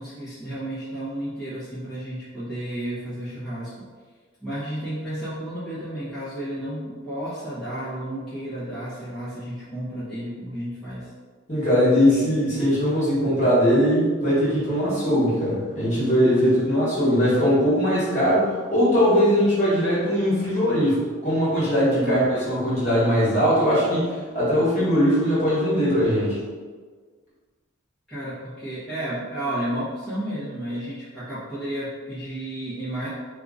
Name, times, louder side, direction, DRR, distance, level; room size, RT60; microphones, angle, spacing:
voice 1, 0.0-3.7 4.4-11.1 21.9-22.2 28.1-33.1, right 1 dB, ahead, -15 dB, 1.0 m, -32 dB
voice 2, 11.5-26.4, equal, 35° left, -10 dB, 1.4 m, -20 dB
2.8 x 2.6 x 3.6 m, 1.5 s
head